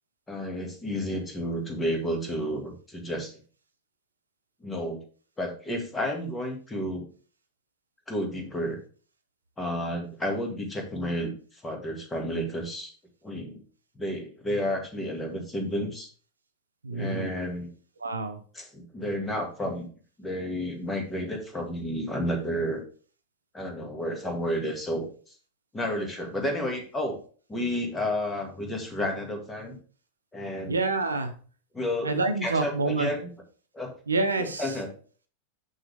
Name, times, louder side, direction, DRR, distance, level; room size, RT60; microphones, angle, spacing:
voice 1, 0.3-3.3 4.6-5.0 5.4-7.0 8.1-8.8 9.6-12.9 13.2-13.6 14.0-16.1 16.9-17.7 18.5-19.9 20.2-22.8 23.5-25.3 25.7-27.2 27.5-29.8 30.3-30.8 31.7-32.1 32.4-33.3 33.7-34.0 34.4-34.9, equal, 15° left, 2 dB, 1.9 m, -31 dB
voice 2, 16.8-17.3 18.0-18.4 30.7-31.3 32.0-33.1 34.1-34.7, right 3 dB, 75° right, 7 dB, 0.9 m, -27 dB
6.5 x 6.1 x 3.4 m, 0.40 s
figure-of-eight pair, 90°, 0 cm